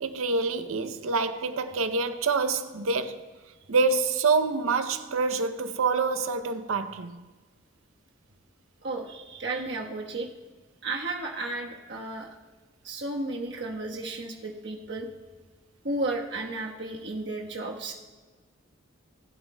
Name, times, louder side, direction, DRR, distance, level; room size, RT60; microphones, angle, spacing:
voice 1, 0.0-3.3 3.7-7.2, right 4 dB, 80° right, 0.6 m, -26 dB
voice 2, 8.8-10.3 10.8-12.4 12.8-15.1 15.8-17.9, right 2 dB, 55° right, 1.2 m, -33 dB
20.0 x 7.9 x 2.2 m
head